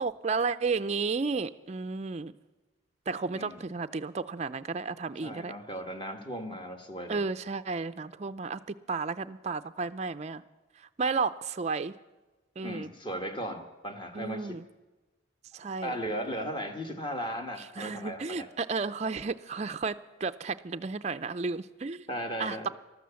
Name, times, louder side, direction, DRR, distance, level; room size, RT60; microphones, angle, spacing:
voice 1, 0.0-2.3 3.1-5.5 7.1-8.6 8.9-10.4 11.0-11.9 12.6-12.9 14.1-14.6 15.5-16.0 17.8-20.0 20.2-22.0 22.4-22.7, right 4 dB, 35° right, 10 dB, 0.4 m, -32 dB
voice 2, 5.2-7.2 12.6-14.6 15.8-18.5 22.1-22.7, equal, 25° left, 5 dB, 1.3 m, -36 dB
14.0 x 13.0 x 7.0 m, 1.1 s
head